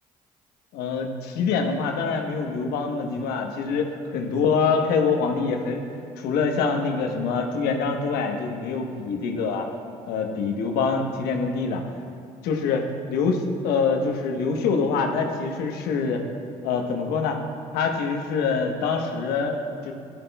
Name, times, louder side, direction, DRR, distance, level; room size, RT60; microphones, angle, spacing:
voice 1, 0.7-5.8 6.2-9.7 10.1-11.8 12.4-16.2 16.6-17.4 17.7-19.9, left 5 dB, 75° left, 3 dB, 1.1 m, -25 dB
14.0 x 11.0 x 2.3 m, 2.5 s
hypercardioid pair, 60°, 16 cm